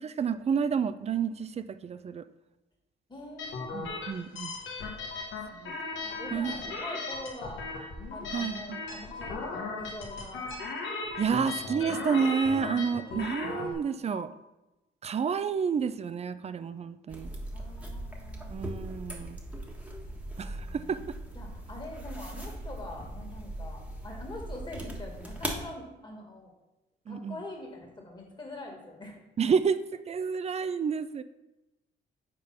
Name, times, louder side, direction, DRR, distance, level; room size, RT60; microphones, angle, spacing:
voice 1, 0.0-2.2 3.7-4.5 5.6-5.7 6.3-6.5 8.3-8.8 11.2-14.3 15.0-17.3 18.5-19.4 20.4-21.0 27.1-27.3 29.4-31.2, right 6 dB, 35° right, 12 dB, 0.4 m, -30 dB
voice 2, 3.1-4.0 5.3-5.4 6.0-7.6 8.1-10.5 17.5-18.5 20.4-21.1 21.3-26.5 27.1-29.2, left 2 dB, 25° left, 0 dB, 2.0 m, -44 dB
sound 1, 3.4-13.7, left 3 dB, 75° left, 1.3 m, -37 dB
sound 2, 5.1-5.2 6.1-6.2 7.1-7.2 8.1-8.2 9.1-9.2 10.1-10.2 11.1-11.2 12.1-12.2 13.1-13.2 14.1-14.2, left 5 dB, 45° left, 0.7 m, -42 dB
sound 3, 17.1-25.6, right 1 dB, 5° right, 1.3 m, -39 dB
5.3 x 4.4 x 5.6 m, 1.0 s
cardioid pair, 90°, 20 cm